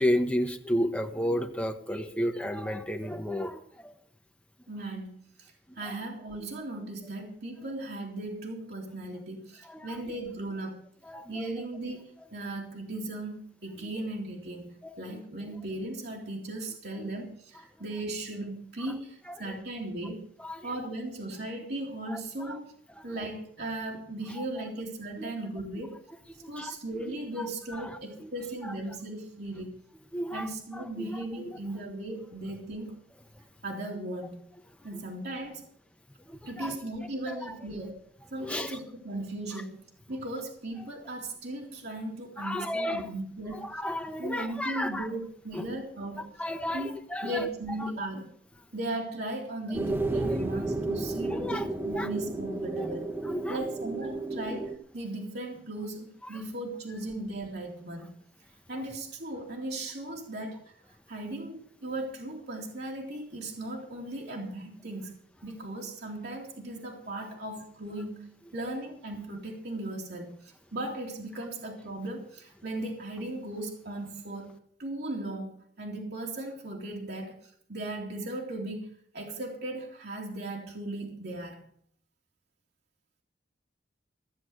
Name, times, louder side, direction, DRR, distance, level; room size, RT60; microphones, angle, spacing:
voice 1, 0.0-3.9 9.7-10.0 11.1-11.3 14.8-15.2 17.0-17.1 20.4-20.6 22.1-22.2 25.2-25.3 26.4-26.7 27.4-27.5 28.2-28.3 28.6-28.7 30.1-31.1 31.4-31.6 36.3-36.7 37.3-37.6 38.4-38.8 42.4-43.0 43.6-45.1 45.5-45.6 46.4-46.8 47.1-47.5 50.3-50.4 51.3-51.7 52.0-52.1 52.8-52.9 53.3-53.6, equal, 10° left, 5 dB, 1.1 m, -32 dB
voice 2, 4.7-10.8 11.3-12.0 12.3-14.7 15.0-20.3 20.6-22.7 23.0-26.0 26.5-29.7 30.3-32.9 33.6-34.4 34.8-35.6 36.5-38.0 38.3-39.8 40.1-43.7 44.2-46.3 46.7-48.3 48.7-53.1 53.5-58.2 58.7-60.7 61.1-65.2 65.4-78.9 79.1-81.6, right 1 dB, 65° right, -1 dB, 2.8 m, -37 dB
sound 1, 49.7-54.8, right 2 dB, 15° right, 0.9 m, -32 dB
15.0 x 7.9 x 7.9 m, 0.62 s
head